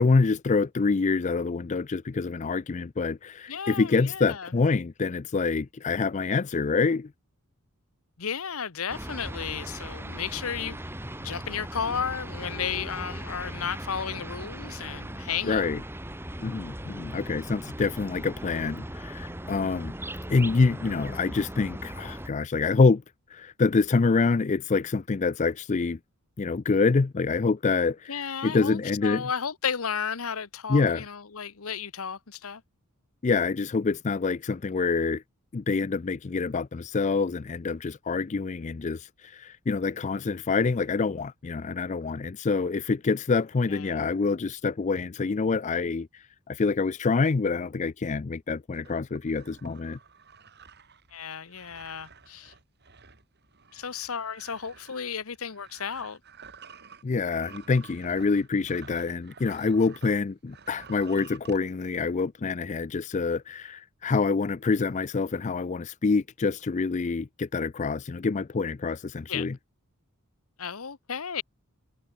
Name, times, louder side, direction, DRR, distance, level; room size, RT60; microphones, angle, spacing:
voice 1, 0.0-7.1 15.5-15.8 16.4-19.9 20.3-23.0 23.3-26.0 26.4-28.2 28.4-29.3 30.7-31.0 33.2-35.2 35.5-50.0 57.0-69.6, left 4 dB, 35° left, 0.4 m, -26 dB
voice 2, 3.5-4.5 8.2-10.8 11.2-15.7 28.1-32.6 43.7-44.0 51.1-52.5 53.7-56.2 69.3-69.5 70.6-71.4, left 7 dB, 75° left, 1.0 m, -33 dB
sound 1, 8.9-22.3, right 1 dB, 10° right, 3.2 m, -38 dB
sound 2, 48.7-60.2 60.5-61.6, right 5 dB, 50° right, 5.6 m, -51 dB
head